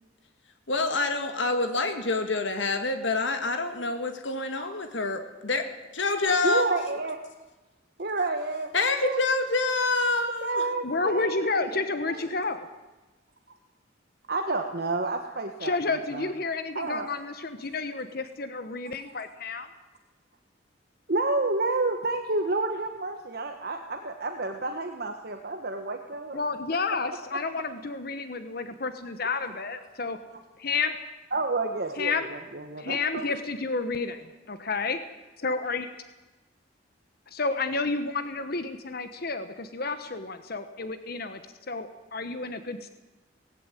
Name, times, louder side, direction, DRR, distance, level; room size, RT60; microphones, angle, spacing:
voice 1, 0.7-5.7 5.9-6.7 8.7-10.6, left 3 dB, 75° left, 7 dB, 2.0 m, -27 dB
voice 2, 6.4-7.2 8.0-8.7 9.0-9.3 10.1-12.2 14.3-16.3 16.7-17.1 21.1-26.4 27.8-28.0 29.2-29.4 31.3-33.3, right 2 dB, 55° right, 5 dB, 1.5 m, -30 dB
voice 3, 10.8-12.7 15.6-19.7 26.3-30.2 30.6-30.9 32.0-32.2 32.8-35.0 35.4-35.9 37.3-41.4 41.7-42.9, left 3 dB, 55° left, 10 dB, 1.2 m, -30 dB
18.5 x 15.5 x 9.2 m, 1.1 s
head